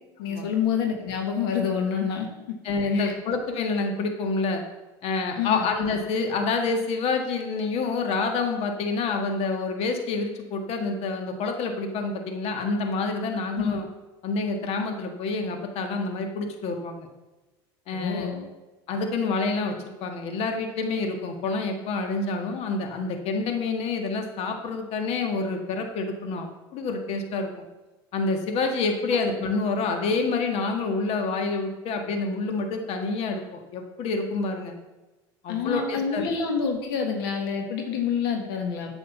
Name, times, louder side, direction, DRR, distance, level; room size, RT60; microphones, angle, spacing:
voice 1, 0.2-2.3 2.9-3.1 5.4-5.7 13.5-13.8 17.9-18.5 35.5-39.0, left 6 dB, 85° left, 3 dB, 1.7 m, -27 dB
voice 2, 2.6-4.6 5.0-13.8 14.2-17.1 17.9-18.3 18.9-27.6 28.1-34.7 35.4-36.2, left 3 dB, 55° left, 5 dB, 1.7 m, -28 dB
8.8 x 6.3 x 7.3 m, 1.1 s
supercardioid pair, 95°, 12 cm